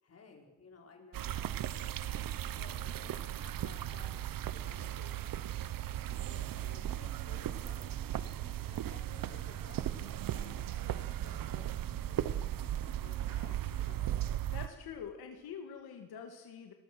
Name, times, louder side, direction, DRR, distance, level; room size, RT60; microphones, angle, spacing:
voice 1, 0.0-5.1 6.1-11.7 12.1-14.2, left 4 dB, 40° left, 1 dB, 5.1 m, -57 dB
sound 1, 1.1-14.7, right 12 dB, 65° right, 1.0 m, -37 dB
voice 2, 14.5-16.7, left 7 dB, 80° left, 4 dB, 2.4 m, -45 dB
29.0 x 21.5 x 6.3 m, 1.2 s
cardioid pair, 125°, 37 cm